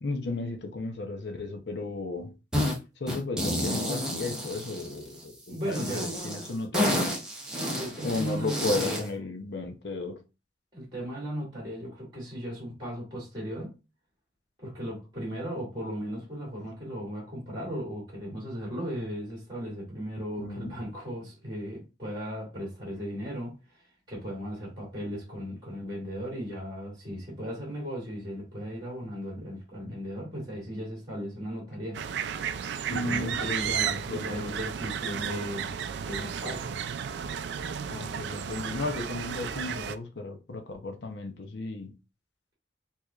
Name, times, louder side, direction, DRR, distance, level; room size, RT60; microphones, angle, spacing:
voice 1, 0.0-2.3 3.0-7.1 8.0-10.2 20.4-20.7 32.9-34.6 37.9-41.9, left 2 dB, 65° left, 0.6 m, -34 dB
sound 1, 2.5-2.8 3.1-5.2 5.7-9.1, left 1 dB, 5° right, 1.0 m, -30 dB
voice 2, 5.5-6.1 7.5-9.0 10.7-13.8 14.6-32.0 32.9-36.8, equal, 25° right, 2.2 m, -36 dB
sound 2, 31.9-40.0, right 8 dB, 70° right, 0.3 m, -33 dB
4.5 x 2.8 x 2.4 m
head